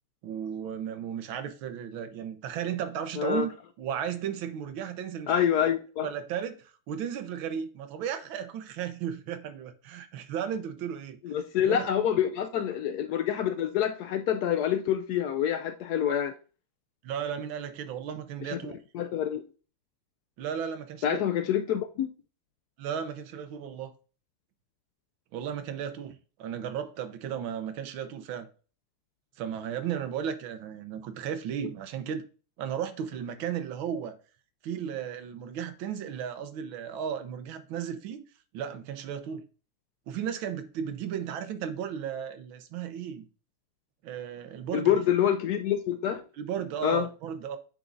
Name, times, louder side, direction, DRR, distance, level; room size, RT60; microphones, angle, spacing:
voice 1, 0.2-5.4 6.0-11.2 11.6-11.9 17.0-18.8 20.4-21.2 22.8-23.9 25.3-28.5 29.4-32.2 32.6-34.1 34.6-38.2 38.5-39.4 40.1-43.3 44.0-44.9 46.4-47.6, right 8 dB, 70° right, 1.6 m, -35 dB
voice 2, 3.2-3.5 5.3-6.1 11.2-16.3 18.5-18.6 18.9-19.4 21.0-22.1 44.7-46.2 46.8-47.1, left 9 dB, 90° left, 0.8 m, -27 dB
8.8 x 6.0 x 2.6 m
omnidirectional pair, 2.3 m